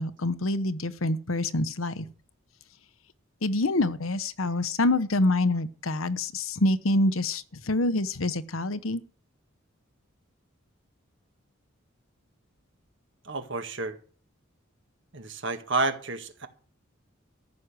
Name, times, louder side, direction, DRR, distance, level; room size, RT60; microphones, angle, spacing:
voice 1, 0.0-2.1 3.4-9.0, left 2 dB, 90° left, 1.0 m, -26 dB
voice 2, 13.2-14.0 15.1-16.5, right 3 dB, 60° right, 1.8 m, -30 dB
14.0 x 6.4 x 9.7 m
head